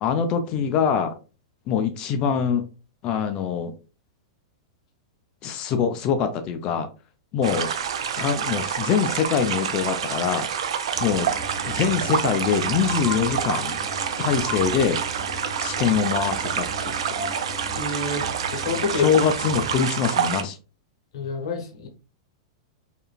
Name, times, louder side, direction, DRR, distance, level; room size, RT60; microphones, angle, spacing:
voice 1, 0.0-1.2 1.7-2.6 3.0-3.7 5.4-6.9 7.3-7.7 8.2-10.5 11.0-11.3 11.6-13.8 14.2-15.0 15.6-16.7 19.0-20.6, left 7 dB, 30° left, 8 dB, 0.3 m, -23 dB
sound 1, 7.4-20.4, right 8 dB, 80° right, 0.4 m, -27 dB
sound 2, 10.9-19.8, equal, 5° left, 0.7 m, -37 dB
voice 2, 17.7-19.1 21.1-21.9, left 4 dB, 70° left, 4 dB, 0.7 m, -28 dB
2.9 x 2.4 x 2.2 m, 0.33 s
supercardioid pair, 155°, 3 cm